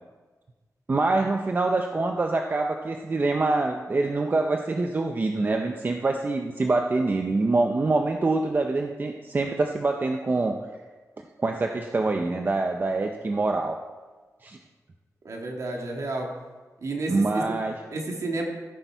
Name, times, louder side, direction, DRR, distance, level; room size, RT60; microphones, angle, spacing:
voice 1, 0.9-10.6 11.4-13.8 14.4-14.6 17.1-17.8, right 3 dB, 35° right, 4 dB, 0.6 m, -25 dB
voice 2, 15.3-16.3 16.8-17.6 17.9-18.4, right 2 dB, 60° right, 1 dB, 1.9 m, -31 dB
15.0 x 8.0 x 4.6 m, 1.3 s
wide cardioid pair, 170°, 6 cm